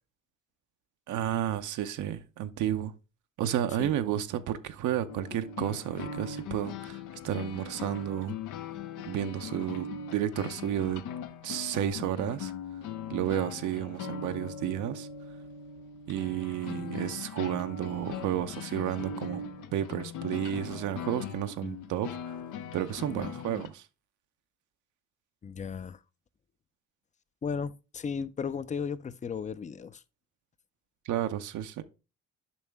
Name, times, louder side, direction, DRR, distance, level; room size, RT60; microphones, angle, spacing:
voice 1, 1.1-2.9 3.4-8.3 9.0-11.0 11.4-12.5 13.1-15.1 16.1-19.4 19.7-22.4 22.7-23.9 31.0-31.8, right 11 dB, 80° right, 0.7 m, -32 dB
sound 1, 5.1-23.7, left 6 dB, 85° left, 0.7 m, -40 dB
voice 2, 23.1-23.4 25.4-26.0 27.4-30.0, left 6 dB, 25° left, 0.4 m, -35 dB
7.2 x 5.3 x 3.5 m
cardioid pair, 90°, 30 cm